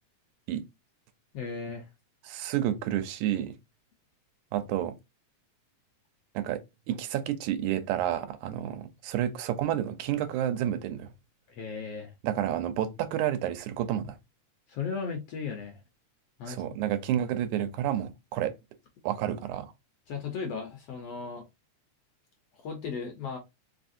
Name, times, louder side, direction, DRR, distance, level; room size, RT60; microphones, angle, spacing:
voice 1, 1.3-1.9 11.5-12.1 14.7-15.8 16.4-16.6 20.1-21.4 22.5-23.4, left 5 dB, 70° left, 1.6 m, -36 dB
voice 2, 2.3-3.5 4.5-4.9 6.4-11.1 12.2-14.2 16.5-18.5 19.0-19.7, right 11 dB, 85° right, 2.1 m, -30 dB
4.9 x 3.4 x 2.6 m
omnidirectional pair, 3.5 m